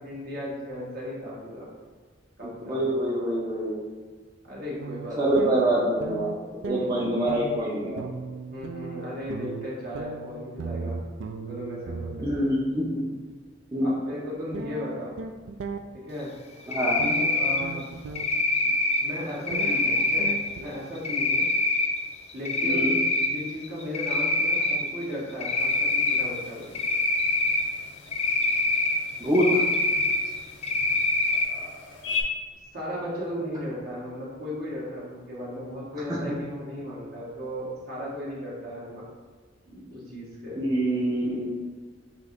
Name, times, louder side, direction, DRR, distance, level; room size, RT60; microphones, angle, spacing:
voice 1, 0.0-1.7 2.4-2.8 4.4-5.4 6.8-7.0 8.5-11.0 11.4-12.4 13.8-15.2 15.9-16.3 17.0-17.9 18.6-18.7 19.0-21.4 22.3-22.8 23.2-26.7 31.5-31.7 32.0-32.1 32.7-39.1 39.7-40.6, left 1 dB, 55° right, -5 dB, 1.2 m, -36 dB
voice 2, 2.4-3.8 5.2-8.0 12.2-13.0 13.7-13.9 16.7-17.0 22.6-23.0 29.2-29.7 36.3-36.4 40.5-41.5, right 1 dB, 20° right, -7 dB, 0.6 m, -25 dB
sound 1, 4.8-6.4 6.6-12.5 14.5-15.8 17.0-18.3 19.5-20.9, right 4 dB, 85° right, 0.3 m, -37 dB
Cricket, 16.7-17.6 18.2-19.0 19.5-20.3 21.0-21.9 22.3-23.3 23.6-24.8 25.4-26.2 26.7-27.6 28.1-28.9 29.3-30.2 30.6-31.4, left 2 dB, 35° left, 0.4 m, -24 dB
sound 2, 25.6-32.2, left 5 dB, 90° left, 0.6 m, -40 dB
5.9 x 2.8 x 2.5 m, 1.5 s
head